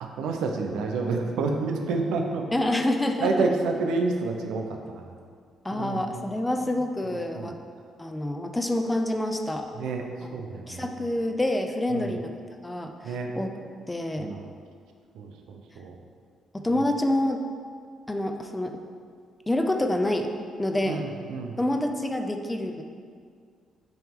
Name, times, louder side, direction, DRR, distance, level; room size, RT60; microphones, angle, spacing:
voice 1, 0.0-2.4 3.2-5.1 5.7-6.1 7.1-7.5 9.8-10.0 10.3-10.9 11.9-12.2 13.0-13.3 14.2-14.5 15.2-16.0 20.8-21.6, right 3 dB, 90° right, 3 dB, 0.6 m, -29 dB
voice 2, 2.5-3.5 5.6-7.6 8.0-9.7 10.7-12.3 12.6-13.5 13.9-14.3 16.5-17.4 18.1-18.8 19.5-20.3 20.6-21.0 21.6-22.8, left 1 dB, 10° left, 4 dB, 0.5 m, -27 dB
8.8 x 3.1 x 3.6 m, 2.1 s
cardioid pair, 90°, 0 cm